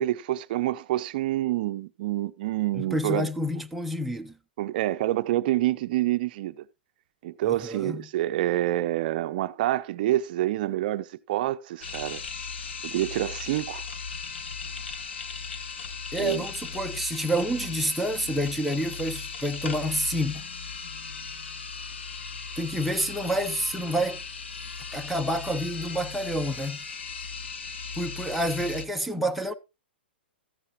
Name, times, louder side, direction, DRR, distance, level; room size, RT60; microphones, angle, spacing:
voice 1, 0.0-3.3 4.6-6.5 7.2-12.2 12.8-13.8 16.2-16.4, right 14 dB, 50° right, 0.6 m, -27 dB
voice 2, 2.7-4.3 7.4-8.1 16.1-20.5 22.6-24.2 24.9-26.8 28.0-29.5, equal, ahead, 0.7 m, -28 dB
sound 1, 11.8-28.9, left 5 dB, 85° left, 1.4 m, -37 dB
13.5 x 9.6 x 3.1 m
hypercardioid pair, 135°, 6 cm